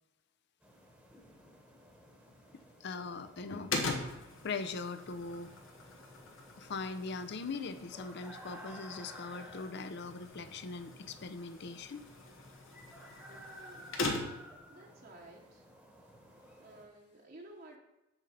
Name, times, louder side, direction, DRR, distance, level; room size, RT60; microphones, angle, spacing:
sound 1, 0.6-16.9, equal, 5° right, 1.1 m, -55 dB
voice 1, 2.5-5.5 6.6-12.0, left 4 dB, 60° left, 10 dB, 0.5 m, -41 dB
sound 2, 3.7-14.6, left 2 dB, 80° left, 1.1 m, -42 dB
voice 2, 13.3-14.2 14.7-15.7 16.6-17.8, right 2 dB, 50° right, -1 dB, 0.9 m, -54 dB
7.2 x 3.9 x 6.6 m, 0.96 s
head